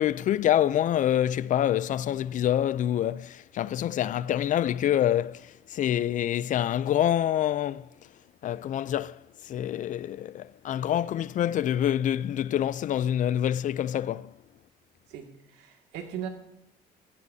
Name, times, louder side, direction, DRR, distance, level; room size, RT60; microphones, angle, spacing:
voice 1, 0.0-7.9 8.4-14.3, left 11 dB, 50° left, 0.4 m, -26 dB
voice 2, 15.1-16.3, right 9 dB, 85° right, 2.1 m, -38 dB
16.0 x 15.5 x 2.8 m
cardioid pair, 110°, 17 cm